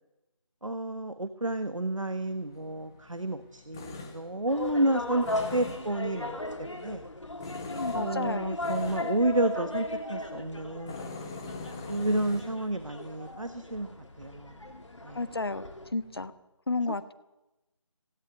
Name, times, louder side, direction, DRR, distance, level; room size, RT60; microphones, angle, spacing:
voice 1, 0.6-7.1 7.9-11.0 11.9-13.9 14.2-14.6 15.0-15.2, right 1 dB, 75° right, 10 dB, 1.4 m, -30 dB
Tools, 2.2-16.3, left 3 dB, 10° left, 0.9 m, -46 dB
sound 1, 4.5-15.9, left 1 dB, 65° left, 2.8 m, -37 dB
voice 2, 7.7-8.6 15.1-15.7 15.9-16.3 16.7-17.1, left 3 dB, 50° left, 13 dB, 1.2 m, -32 dB
17.5 x 17.0 x 9.5 m, 1.0 s
figure-of-eight pair, 160°, 17 cm